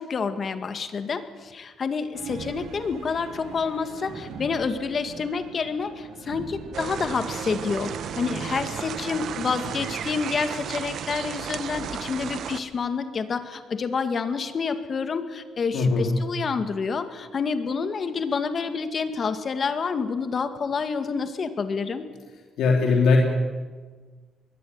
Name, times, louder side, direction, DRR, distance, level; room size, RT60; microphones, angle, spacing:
voice 1, 0.0-22.1, left 5 dB, 45° left, 9 dB, 2.0 m, -28 dB
sound 1, 2.1-10.1, right 5 dB, 85° right, 3.3 m, -40 dB
sound 2, 6.7-12.6, right 8 dB, 70° right, 1.3 m, -34 dB
voice 2, 15.7-16.1 22.6-23.2, left 4 dB, 80° left, 1 dB, 2.8 m, -20 dB
22.0 x 16.5 x 9.5 m, 1.4 s
cardioid pair, 90°, 0 cm